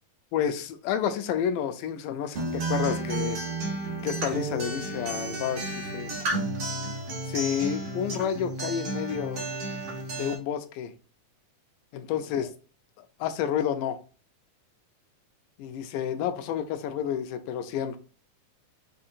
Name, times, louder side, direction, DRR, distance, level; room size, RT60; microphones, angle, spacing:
voice 1, 0.3-3.4 4.0-6.1 7.2-9.5 10.2-10.9 11.9-12.5 13.0-14.0 15.6-18.0, left 8 dB, 85° left, 2.1 m, -30 dB
Acoustic guitar, 2.4-10.3, right 2 dB, 65° right, 1.1 m, -32 dB
6.3 x 2.7 x 2.6 m
omnidirectional pair, 3.7 m